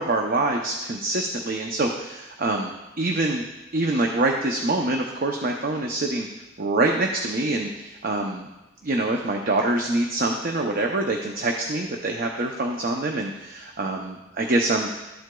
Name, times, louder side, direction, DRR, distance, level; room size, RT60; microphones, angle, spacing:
voice 1, 0.0-2.7 3.0-3.4 3.7-6.3 6.6-8.5 8.8-14.9, right 2 dB, 50° right, 2 dB, 0.6 m, -25 dB
12.5 x 7.7 x 2.3 m, 1.0 s
head